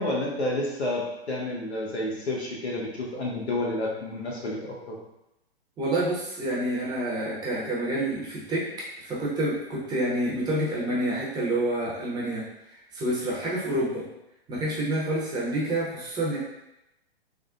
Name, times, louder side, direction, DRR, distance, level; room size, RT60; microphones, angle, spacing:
voice 1, 0.0-4.6 4.9-5.0, left 1 dB, 80° left, -2 dB, 0.9 m, -30 dB
voice 2, 5.8-14.0 14.5-16.4, right 1 dB, 15° right, -6 dB, 0.6 m, -28 dB
3.6 x 2.1 x 2.4 m, 0.88 s
figure-of-eight pair, 120°, 32 cm